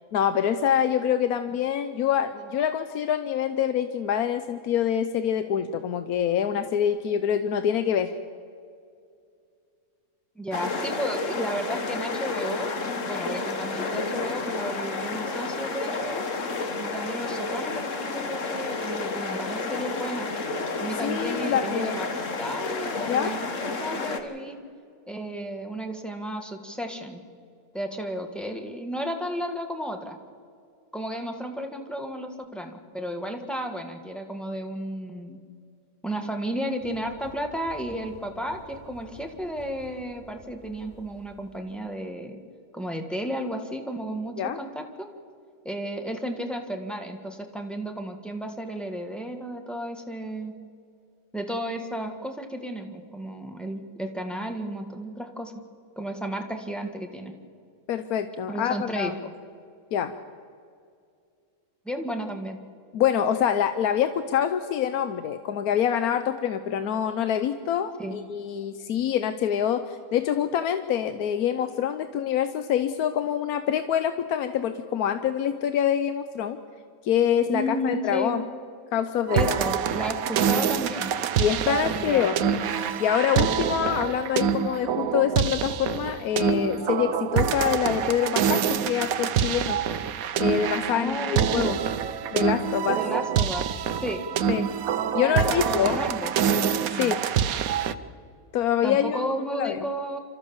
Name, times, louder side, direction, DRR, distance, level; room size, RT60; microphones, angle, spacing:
voice 1, 0.1-8.1 21.0-22.0 23.1-23.3 44.4-44.6 57.9-59.1 59.9-60.1 62.9-76.6 77.0-78.4 78.9-79.6 81.4-82.3 83.0-89.8 90.4-91.8 92.3-93.0 94.5-94.7 95.1-96.0 96.9-97.2 98.5-99.8, left 9 dB, 90° left, 10 dB, 1.3 m, -25 dB
voice 2, 10.3-12.7 13.1-16.2 16.8-20.3 20.8-24.6 25.1-27.2 27.7-30.2 30.9-35.4 36.0-42.4 42.7-45.1 45.6-50.5 51.3-55.5 55.9-57.3 58.5-59.1 61.8-62.6 68.0-68.1 77.5-78.3 79.3-81.2 81.7-82.6 90.9-91.7 92.9-94.2 95.2-96.3 96.9-97.2 98.8-100.2, equal, ahead, 3 dB, 1.6 m, -33 dB
sound 1, 10.5-24.2, left 3 dB, 60° left, 1.7 m, -30 dB
sound 2, 36.8-42.0, equal, 15° left, 4.1 m, -50 dB
sound 3, 79.3-97.9, right 8 dB, 75° right, 1.2 m, -26 dB
27.5 x 13.5 x 7.1 m, 2.3 s
omnidirectional pair, 1.5 m